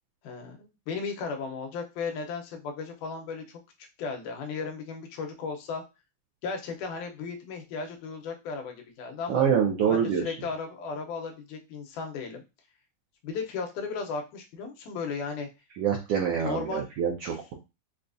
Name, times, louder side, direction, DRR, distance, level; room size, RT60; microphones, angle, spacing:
voice 1, 0.2-3.6 4.0-5.8 6.4-9.5 9.9-12.4 13.2-15.5 16.4-16.9, left 5 dB, 85° left, 3 dB, 2.2 m, -35 dB
voice 2, 9.3-10.3 15.8-17.5, right 7 dB, 90° right, 1 dB, 1.3 m, -26 dB
5.4 x 2.3 x 2.5 m, 0.26 s
omnidirectional pair, 3.6 m